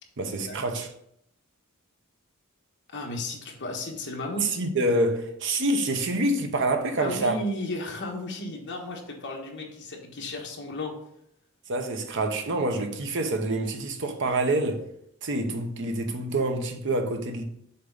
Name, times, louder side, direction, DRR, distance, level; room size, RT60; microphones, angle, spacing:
voice 1, 0.2-0.9 4.4-7.4 11.7-14.8 15.2-17.4, right 2 dB, 60° right, 0.8 m, -27 dB
voice 2, 2.9-4.5 7.0-10.9, left 1 dB, 55° left, 1.4 m, -34 dB
6.8 x 4.1 x 3.9 m
head